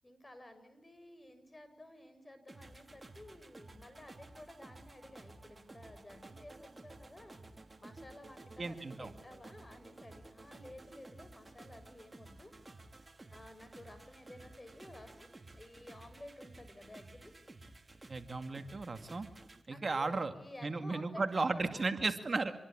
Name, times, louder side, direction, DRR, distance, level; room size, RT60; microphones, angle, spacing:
voice 1, 0.0-12.5 13.3-15.3 15.6-17.3 19.7-22.0, left 1 dB, 25° left, 10 dB, 7.4 m, -53 dB
sound 1, 2.5-19.6, right 2 dB, 30° right, 3.4 m, -54 dB
voice 2, 8.6-9.1 18.1-19.3 19.7-20.3 20.6-22.5, right 3 dB, 45° right, 8 dB, 2.2 m, -35 dB
27.5 x 21.5 x 8.8 m, 0.81 s
cardioid pair, 50°, 0 cm